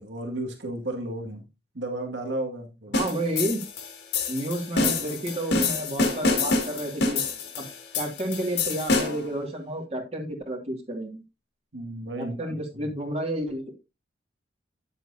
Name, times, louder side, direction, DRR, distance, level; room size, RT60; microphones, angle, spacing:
voice 1, 0.0-1.4 1.7-3.0 11.7-12.6 12.8-12.9, right 1 dB, 75° right, 2 dB, 2.0 m, -33 dB
sound 1, 2.9-9.3, left 3 dB, 60° left, 2.2 m, -27 dB
voice 2, 2.9-3.6 4.3-7.2 7.6-7.7 7.9-11.2 12.2-13.7, right 1 dB, 35° right, 1 dB, 2.1 m, -31 dB
10.0 x 7.7 x 2.7 m, 0.26 s
head